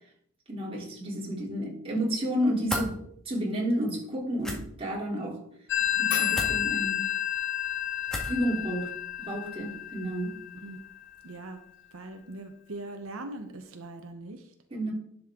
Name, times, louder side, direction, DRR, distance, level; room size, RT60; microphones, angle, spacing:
voice 1, 0.5-3.0 3.2-5.4 6.0-7.1 8.3-8.9 9.2-10.4 14.7-14.9, equal, 30° right, -3 dB, 3.1 m, -31 dB
sound 1, 2.7-2.9 4.4-4.6 6.3-6.6 8.1-8.4, equal, 5° left, 1.6 m, -32 dB
Telephone, 5.7-11.0, left 11 dB, 60° left, 0.7 m, -30 dB
voice 2, 11.2-11.6 11.9-14.5, right 2 dB, 85° right, 5 dB, 0.9 m, -41 dB
11.0 x 6.4 x 3.7 m, 0.68 s
head